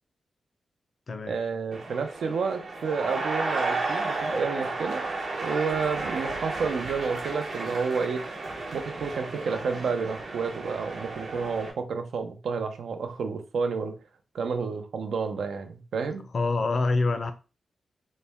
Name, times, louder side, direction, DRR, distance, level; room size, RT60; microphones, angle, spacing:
voice 1, 1.3-5.1 5.4-8.2 8.7-13.9 14.3-16.3, right 5 dB, 80° right, 0.6 m, -30 dB
sound 1, 1.7-11.7, right 3 dB, 65° right, 1.0 m, -33 dB
voice 2, 16.3-17.3, left 3 dB, 40° left, 0.4 m, -25 dB
4.1 x 2.1 x 3.4 m
wide cardioid pair, 175°, 0 cm